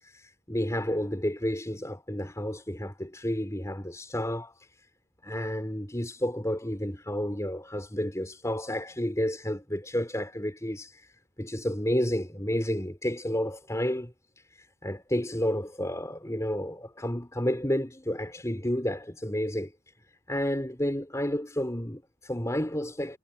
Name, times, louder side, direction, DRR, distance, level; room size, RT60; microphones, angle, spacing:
voice 1, 0.0-4.5 5.2-11.1 11.4-14.1 14.6-19.7 20.3-23.2, equal, 15° left, 4.3 m, -31 dB
head